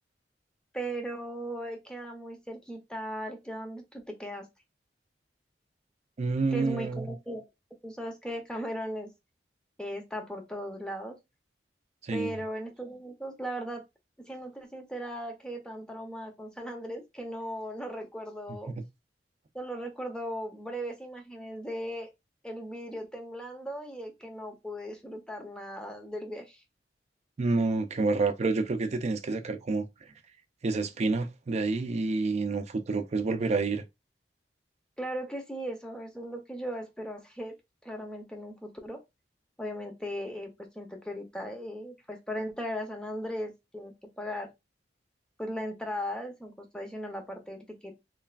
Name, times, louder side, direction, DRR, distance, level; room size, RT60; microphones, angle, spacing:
voice 1, 0.7-4.5 6.5-7.4 7.8-9.1 9.8-11.2 12.1-13.8 14.3-18.7 19.5-22.1 22.4-26.6 35.0-37.5 37.8-39.0 39.6-44.5 45.4-48.0, equal, 5° left, 0.6 m, -37 dB
voice 2, 6.2-7.1 12.0-12.4 18.7-18.8 27.4-29.9 30.6-33.8, right 3 dB, 40° right, 0.4 m, -28 dB
3.2 x 2.3 x 2.3 m
head